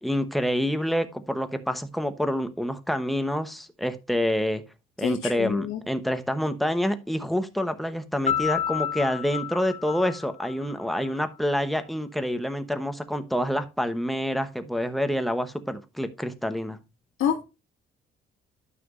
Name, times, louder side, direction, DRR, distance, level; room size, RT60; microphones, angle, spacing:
voice 1, 0.0-4.6 5.0-16.8, equal, ahead, 8 dB, 0.9 m, -27 dB
voice 2, 5.0-5.8 17.2-17.4, left 8 dB, 75° left, 2 dB, 1.9 m, -27 dB
Piano, 8.3-11.1, left 9 dB, 35° left, 1.3 m, -30 dB
12.5 x 5.9 x 2.5 m, 0.26 s
cardioid pair, 135°, 21 cm